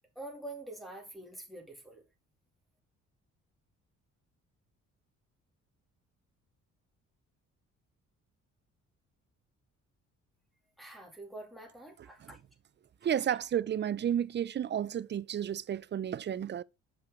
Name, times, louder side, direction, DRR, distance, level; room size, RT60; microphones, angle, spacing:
voice 1, 0.1-2.0 10.8-12.4, right 1 dB, ahead, 2.5 m, -46 dB
voice 2, 13.0-16.6, right 9 dB, 35° right, 0.5 m, -32 dB
6.7 x 5.8 x 3.7 m
cardioid pair, 90°, 30 cm